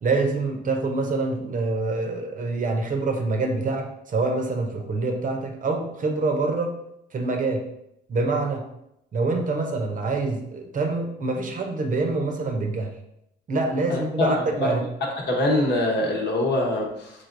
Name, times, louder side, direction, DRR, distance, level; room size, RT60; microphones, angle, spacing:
voice 1, 0.0-6.7 7.1-7.6 8.1-8.6 9.1-12.9 13.5-14.8, right 3 dB, 40° right, 3 dB, 0.7 m, -25 dB
voice 2, 13.9-14.3 14.6-14.7 15.3-17.1, left 1 dB, 60° left, 0 dB, 1.0 m, -23 dB
3.9 x 3.2 x 2.6 m, 0.79 s
cardioid pair, 90°, 20 cm